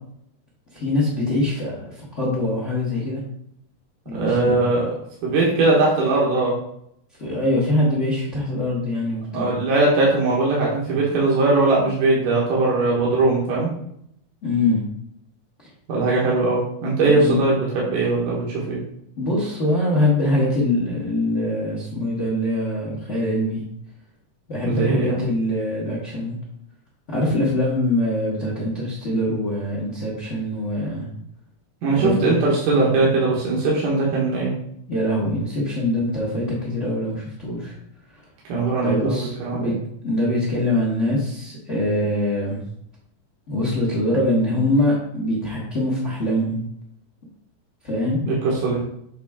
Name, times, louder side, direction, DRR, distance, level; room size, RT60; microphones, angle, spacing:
voice 1, 0.7-3.2 4.0-4.6 7.2-9.5 14.4-14.8 15.6-15.7 17.1-17.4 19.2-23.6 24.5-26.4 27.1-31.1 31.9-32.3 34.9-37.8 38.1-38.2 38.8-39.7 40.0-42.6 43.5-46.6 47.8-48.2, left 1 dB, 35° left, -5 dB, 1.1 m, -23 dB
voice 2, 4.1-4.9 5.2-6.5 9.3-13.7 15.9-18.8 24.6-25.2 31.8-34.5 38.5-39.7 48.3-48.9, right 3 dB, 75° right, -5 dB, 3.0 m, -20 dB
8.0 x 3.8 x 3.6 m, 0.72 s
omnidirectional pair, 3.8 m